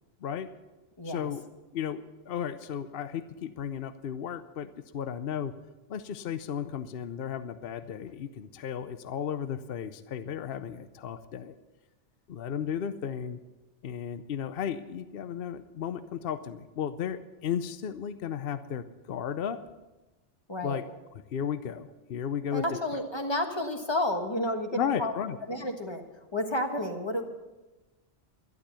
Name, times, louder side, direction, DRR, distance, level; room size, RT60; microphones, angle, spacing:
voice 1, 0.2-0.5 1.0-1.4 1.7-5.5 5.9-11.5 12.3-13.4 13.8-19.6 20.6-20.8 21.3-22.6 22.9-23.0 24.7-25.4, left 8 dB, 60° left, 11 dB, 0.8 m, -34 dB
voice 2, 1.0-1.3 20.5-20.8 22.5-25.1 25.5-26.1 26.3-27.3, left 1 dB, 25° left, 4 dB, 1.5 m, -31 dB
12.0 x 11.5 x 6.8 m, 1.1 s
omnidirectional pair, 1.2 m